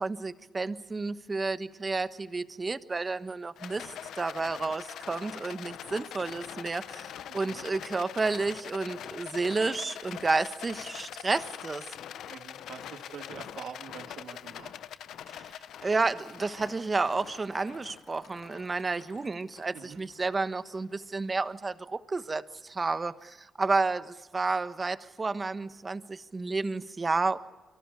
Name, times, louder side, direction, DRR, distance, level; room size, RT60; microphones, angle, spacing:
voice 1, 0.0-11.8 15.3-15.5 15.8-27.4, right 3 dB, 25° right, 11 dB, 1.2 m, -31 dB
Rattle, 3.6-20.9, left 10 dB, 75° left, 0.8 m, -44 dB
voice 2, 7.3-7.6 12.2-14.7 19.7-20.0, right 7 dB, 70° right, 3 dB, 2.8 m, -45 dB
28.5 x 24.5 x 6.9 m, 1.1 s
cardioid pair, 90°, 0 cm